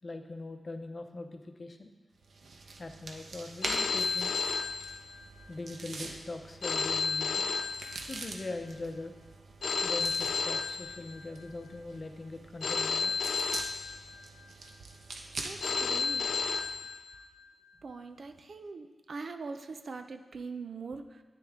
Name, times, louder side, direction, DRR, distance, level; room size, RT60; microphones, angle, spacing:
voice 1, 0.0-1.9 2.8-4.4 5.5-7.5 8.1-9.1 9.8-13.2, left 2 dB, 40° left, 5 dB, 0.8 m, -41 dB
sound 1, 2.2-16.9, right 3 dB, 80° right, 1.0 m, -45 dB
Telephone, 3.6-5.5 6.6-8.5 9.6-11.5 12.6-14.5 15.6-17.5, left 5 dB, 70° left, 0.5 m, -32 dB
voice 2, 15.4-16.3 17.8-21.2, right 4 dB, 60° right, 8 dB, 0.6 m, -42 dB
10.0 x 9.4 x 3.7 m, 1.3 s
wide cardioid pair, 115°, 0 cm